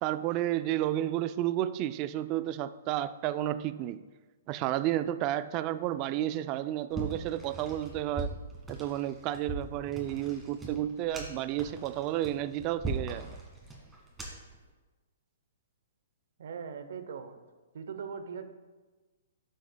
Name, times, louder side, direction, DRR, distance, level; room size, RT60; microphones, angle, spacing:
voice 1, 0.0-4.0 4.5-8.3 8.7-13.4, right 13 dB, 35° right, 13 dB, 0.3 m, -31 dB
sound 1, 6.9-14.6, right 2 dB, 10° right, 1.8 m, -40 dB
voice 2, 16.4-17.4 17.7-18.4, right 6 dB, 70° right, 9 dB, 0.7 m, -40 dB
12.0 x 6.3 x 2.2 m, 1.3 s
hypercardioid pair, 140°, 0 cm